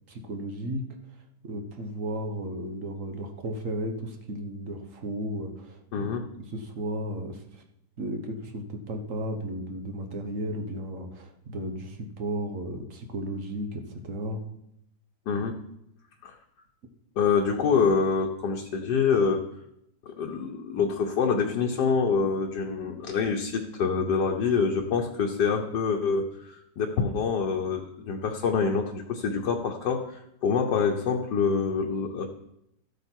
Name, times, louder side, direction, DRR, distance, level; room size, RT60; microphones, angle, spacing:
voice 1, 0.1-0.8 1.4-6.1 6.5-7.6 8.0-14.4, right 1 dB, 50° right, 5 dB, 1.6 m, -34 dB
voice 2, 5.9-6.2 15.3-15.6 16.2-16.3 17.2-19.4 20.1-32.3, left 5 dB, 80° left, 1 dB, 1.5 m, -26 dB
13.5 x 8.1 x 4.6 m, 0.79 s
omnidirectional pair, 1.8 m